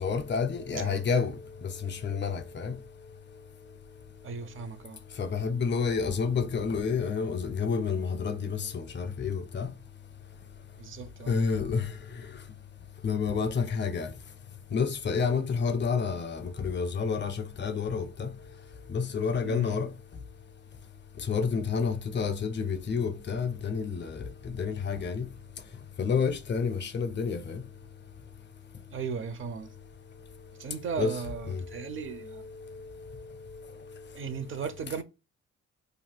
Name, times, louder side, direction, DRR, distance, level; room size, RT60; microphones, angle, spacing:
voice 1, 0.0-1.3 1.8-2.7 5.2-9.7 11.3-11.8 13.0-14.1 14.7-18.3 18.9-19.9 21.3-24.2 24.6-25.2 26.0-27.6 31.0-31.1 31.5-31.6, left 5 dB, 35° left, 0.6 m, -29 dB
voice 2, 0.7-1.0 4.2-5.0 10.8-11.4 19.4-19.8 28.9-29.7 30.6-32.4 34.1-35.0, right 6 dB, 45° right, 0.5 m, -36 dB
2.4 x 2.2 x 3.4 m
cardioid pair, 90°, 30 cm